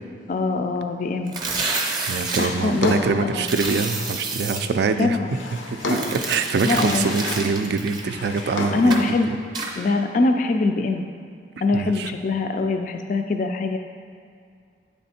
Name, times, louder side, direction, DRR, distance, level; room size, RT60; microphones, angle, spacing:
voice 1, 0.3-1.4 2.4-2.9 3.2-3.5 5.0-5.3 6.6-7.1 8.4-9.3 9.8-11.0 11.6-13.8, left 3 dB, 45° left, 6 dB, 0.3 m, -23 dB
sound 1, 1.3-2.5 3.4-4.6 5.8-8.5 8.9-9.1 9.6-9.7, right 3 dB, 25° right, 0.6 m, -28 dB
voice 2, 2.1-5.2 5.7-9.1 9.7-9.9 11.7-12.1, right 4 dB, 65° right, 8 dB, 0.3 m, -24 dB
Drawer open or close, 2.4-4.2 5.0-6.3 6.7-7.6 7.9-9.0, left 2 dB, 90° left, 0.7 m, -32 dB
8.5 x 3.4 x 4.2 m, 2.3 s
head